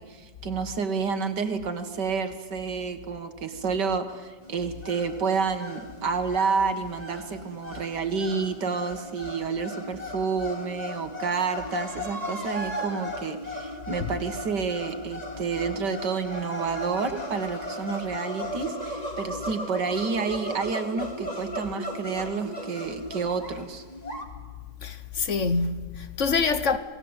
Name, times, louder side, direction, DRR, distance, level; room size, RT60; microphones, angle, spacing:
voice 1, 0.0-23.8, right 5 dB, 70° right, 2.1 m, -29 dB
sound 1, 4.4-24.2, equal, 20° left, 2.3 m, -36 dB
voice 2, 24.8-26.8, left 4 dB, 50° left, 1.2 m, -26 dB
28.0 x 19.5 x 8.0 m
omnidirectional pair, 1.9 m